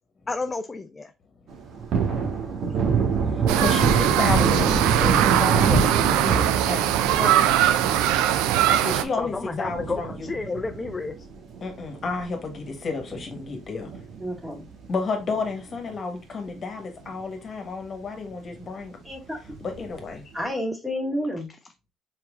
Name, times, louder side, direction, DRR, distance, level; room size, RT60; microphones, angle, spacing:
voice 1, 0.3-1.1 9.2-11.1, left 3 dB, 25° left, 0.4 m, -31 dB
Thunder, 1.5-12.2 12.6-12.7 13.1-14.6 14.8-15.0 15.3-16.2 16.6-16.7 17.0-17.1 19.5-20.0, right 5 dB, 65° right, 1.4 m, -26 dB
sound 1, 3.5-9.0, right 12 dB, 90° right, 0.4 m, -21 dB
voice 2, 3.6-6.9 8.7-10.3 11.6-13.9 14.9-19.0 19.6-20.2, left 4 dB, 45° left, 1.4 m, -31 dB
voice 3, 7.2-7.5 14.2-14.7 19.0-19.4 20.3-21.5, equal, 10° right, 2.0 m, -30 dB
4.6 x 4.1 x 2.5 m
supercardioid pair, 80°, 0 cm